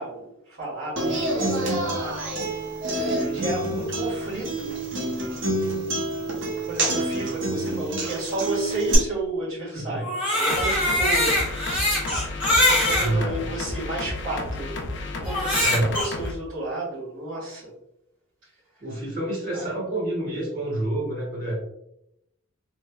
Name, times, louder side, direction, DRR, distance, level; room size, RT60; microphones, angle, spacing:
voice 1, 0.0-2.2 3.0-4.8 5.9-11.4 12.5-14.7 15.2-17.7 18.4-18.5 19.5-19.7, right 2 dB, 75° right, -10 dB, 1.5 m, -32 dB
Human voice / Acoustic guitar, 1.0-8.9, right 2 dB, 60° right, 0.8 m, -27 dB
Crying sobbing, 10.0-13.1 13.8-13.9 15.3-16.1, left 1 dB, 5° right, 1.1 m, -22 dB
sound 1, 10.5-16.3, left 2 dB, 55° left, 0.4 m, -32 dB
voice 2, 13.0-13.4 15.6-16.0 18.8-21.6, right 1 dB, 40° right, -4 dB, 1.4 m, -28 dB
3.1 x 3.0 x 2.2 m, 0.79 s
head